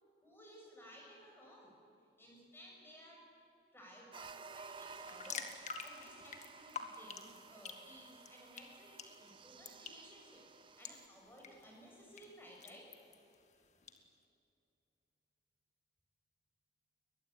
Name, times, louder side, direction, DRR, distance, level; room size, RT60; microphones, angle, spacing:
voice 1, 0.2-1.7 2.2-3.3 3.7-12.9, equal, 15° left, -2 dB, 7.0 m, -57 dB
sound 1, 4.1-11.1, right 5 dB, 30° right, 0.5 m, -55 dB
sound 2, 4.8-14.0, left 5 dB, 40° left, 1.9 m, -50 dB
22.5 x 21.0 x 9.5 m, 2.6 s
head